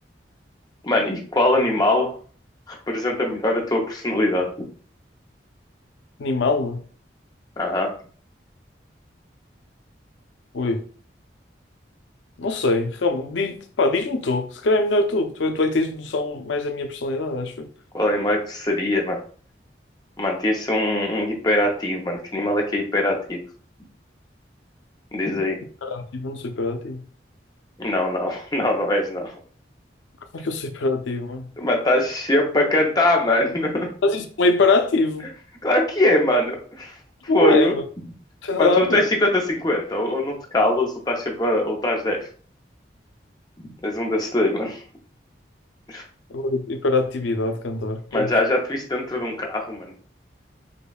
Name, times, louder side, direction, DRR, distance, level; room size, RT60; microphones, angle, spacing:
voice 1, 0.8-2.1 2.7-4.5 7.6-7.9 17.9-19.2 20.2-23.4 25.1-25.6 27.8-29.3 31.6-33.9 35.6-37.0 37.2-37.7 38.6-42.3 43.6-44.8 45.9-46.0 48.1-49.9, left 1 dB, 20° left, 1 dB, 0.6 m, -22 dB
voice 2, 6.2-6.8 10.5-10.8 12.4-17.7 25.8-27.0 30.3-31.5 34.0-35.3 37.3-37.8 38.4-39.1 46.3-48.3, left 2 dB, 80° left, 5 dB, 0.5 m, -23 dB
5.1 x 2.3 x 2.3 m, 0.43 s
head